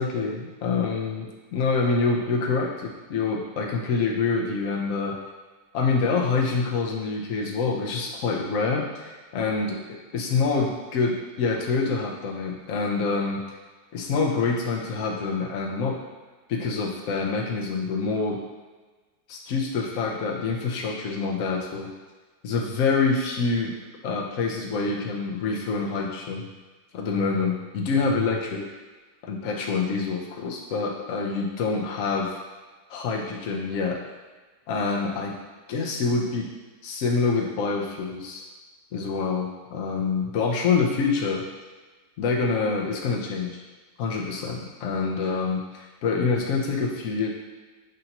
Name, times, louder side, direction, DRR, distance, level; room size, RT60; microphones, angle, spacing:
voice 1, 0.0-5.1 5.7-9.7 10.1-13.6 13.9-16.0 16.5-18.4 19.3-21.9 22.4-23.7 24.0-26.5 26.9-28.6 29.3-32.3 32.9-34.0 34.7-35.3 35.7-36.4 36.8-38.4 38.9-41.4 42.2-43.5 44.0-47.3, left 4 dB, 60° left, -1 dB, 0.9 m, -26 dB
6.5 x 2.7 x 2.9 m, 1.3 s
omnidirectional pair, 1.9 m